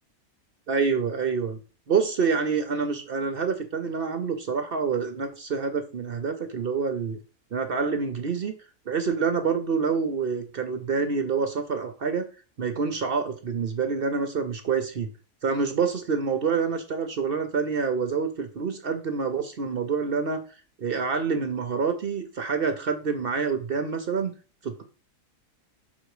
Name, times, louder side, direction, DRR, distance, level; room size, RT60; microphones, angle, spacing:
voice 1, 0.7-1.6 1.9-7.2 7.5-8.5 8.9-12.3 12.6-15.1 15.4-20.4 20.8-24.3 24.6-24.8, right 5 dB, 55° right, 8 dB, 0.6 m, -27 dB
6.2 x 3.8 x 4.8 m, 0.36 s
omnidirectional pair, 1.7 m